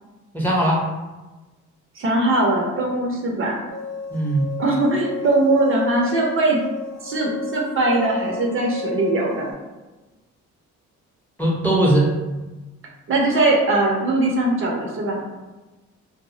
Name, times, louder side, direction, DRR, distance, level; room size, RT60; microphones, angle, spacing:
voice 1, 0.3-0.8 4.1-4.5 11.4-12.1, right 1 dB, 5° left, -4 dB, 0.7 m, -19 dB
voice 2, 2.0-3.6 4.6-6.6 7.0-9.5 13.1-15.2, right 2 dB, 45° right, -1 dB, 0.6 m, -20 dB
sound 1, 3.7-9.5, left 3 dB, 90° left, 0.7 m, -33 dB
2.1 x 2.0 x 3.7 m, 1.1 s
cardioid pair, 90°, 30 cm